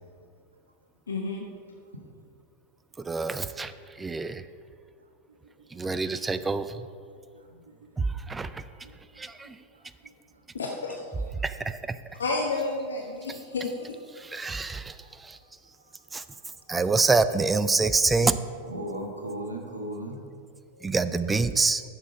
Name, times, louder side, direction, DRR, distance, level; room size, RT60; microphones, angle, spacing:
voice 1, 1.1-1.4 10.5-11.1 12.2-14.0, left 3 dB, 70° left, 0.9 m, -31 dB
voice 2, 3.0-3.7 4.0-4.4 5.7-6.9 8.0-8.6 9.2-9.6 11.4-12.0 14.2-15.4 16.1-16.2 16.7-18.4 20.8-21.8, right 4 dB, 10° right, 0.4 m, -26 dB
voice 3, 5.3-6.0 7.1-10.4 14.4-14.8 15.8-16.1 16.5-16.6 18.7-20.2 20.7-20.9, right 1 dB, 80° right, 1.3 m, -41 dB
11.0 x 6.2 x 5.1 m
figure-of-eight pair, 90°, 0 cm